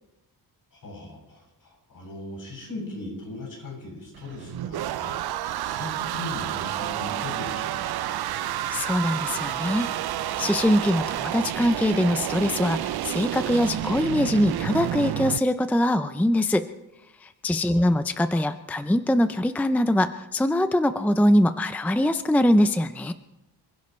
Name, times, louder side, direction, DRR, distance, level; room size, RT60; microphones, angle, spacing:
voice 1, 0.7-8.0 17.7-18.0, left 2 dB, 60° left, 0 dB, 7.9 m, -39 dB
sound 1, 4.1-15.4, right 12 dB, 70° right, 0.6 m, -30 dB
voice 2, 8.7-9.9 10.4-16.7 17.2-23.1, left 1 dB, 5° left, 10 dB, 0.5 m, -23 dB
27.5 x 16.0 x 3.2 m, 0.95 s
wide cardioid pair, 130°, 39 cm